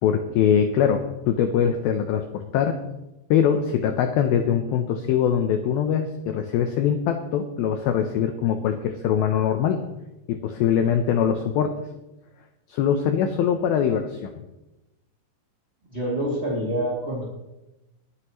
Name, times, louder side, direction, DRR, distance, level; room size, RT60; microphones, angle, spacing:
voice 1, 0.0-2.8 3.3-9.8 10.3-11.7 12.7-14.4, left 8 dB, 90° left, 6 dB, 2.1 m, -22 dB
voice 2, 15.9-17.2, right 1 dB, 20° right, -6 dB, 1.6 m, -26 dB
22.0 x 9.7 x 3.1 m, 0.97 s
omnidirectional pair, 5.3 m